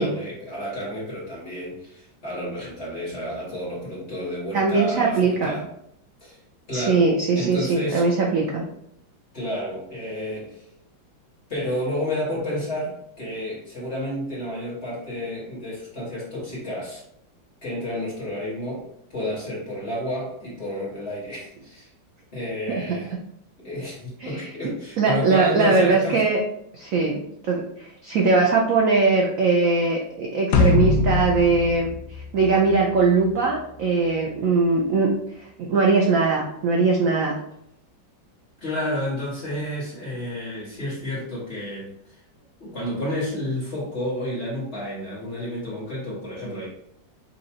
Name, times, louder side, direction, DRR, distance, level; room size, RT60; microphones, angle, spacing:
voice 1, 0.0-5.7 6.2-6.4 6.7-7.1 7.3-8.0 9.3-10.6 11.5-17.0 17.6-18.8 19.1-21.9 22.3-23.1 23.6-26.2 38.6-42.2 42.6-46.7, left 1 dB, 35° left, -8 dB, 1.6 m, -31 dB
voice 2, 4.5-5.5 6.7-8.6 22.7-23.0 24.2-24.5 25.0-26.4 26.7-31.9 32.3-35.1 35.4-37.3, right 4 dB, 85° right, 0 dB, 0.7 m, -21 dB
sound 1, 30.5-33.0, left 3 dB, 90° left, 1.5 m, -22 dB
5.6 x 2.8 x 2.8 m, 0.74 s
omnidirectional pair, 2.1 m